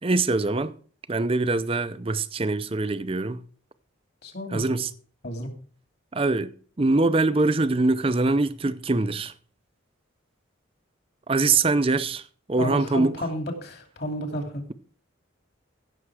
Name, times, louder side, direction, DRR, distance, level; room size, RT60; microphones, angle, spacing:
voice 1, 0.0-0.8 1.1-3.4 4.5-4.9 6.1-6.5 6.8-9.3 11.3-12.2 12.5-13.1, right 3 dB, 25° right, 0.5 m, -23 dB
voice 2, 4.2-4.8 5.2-5.5 12.6-14.7, equal, 50° left, 2.7 m, -32 dB
15.5 x 6.8 x 4.8 m
head